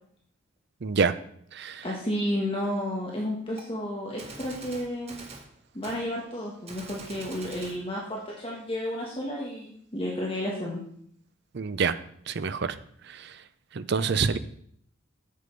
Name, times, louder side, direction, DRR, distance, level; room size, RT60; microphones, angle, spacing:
voice 1, 0.8-1.1 1.5-1.8 11.5-12.0 12.3-12.8 13.1-13.3 13.7-14.4, right 5 dB, 55° right, 13 dB, 0.5 m, -26 dB
voice 2, 1.8-5.1 5.7-10.8, left 1 dB, 25° left, -3 dB, 1.3 m, -32 dB
Gunshot gunfire, 3.6-3.7 4.2-5.5 5.8-6.0 6.7-7.8, right 3 dB, 30° right, 1.3 m, -44 dB
7.7 x 6.7 x 5.2 m, 0.66 s
head